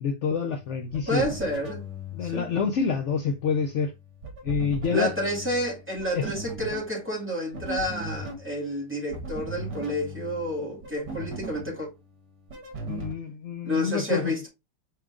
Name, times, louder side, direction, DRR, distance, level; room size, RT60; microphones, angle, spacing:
voice 1, 0.0-1.3 2.1-3.9 4.4-5.1 6.1-6.4 12.9-14.3, left 6 dB, 75° left, 0.6 m, -27 dB
sound 1, 0.6-13.1, right 2 dB, 65° right, 1.9 m, -39 dB
voice 2, 1.1-1.8 2.2-2.5 4.9-11.9 13.6-14.5, equal, 5° right, 1.9 m, -30 dB
4.8 x 4.4 x 2.3 m
omnidirectional pair, 2.0 m